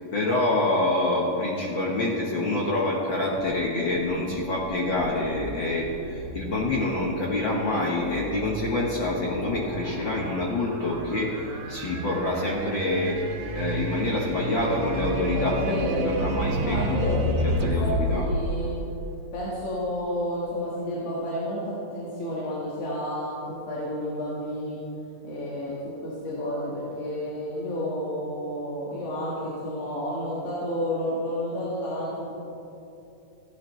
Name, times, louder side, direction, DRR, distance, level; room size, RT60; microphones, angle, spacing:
voice 1, 0.0-13.2 13.5-17.1 17.4-18.2, left 2 dB, 70° left, -3 dB, 1.1 m, -27 dB
sound 1, 3.4-19.5, right 1 dB, 90° right, 2.7 m, -32 dB
voice 2, 15.3-16.3 16.6-17.3 17.8-18.8 19.3-23.4 23.7-24.8 25.2-32.3, equal, 90° left, -7 dB, 3.4 m, -30 dB
15.5 x 11.5 x 3.2 m, 2.8 s
omnidirectional pair, 3.8 m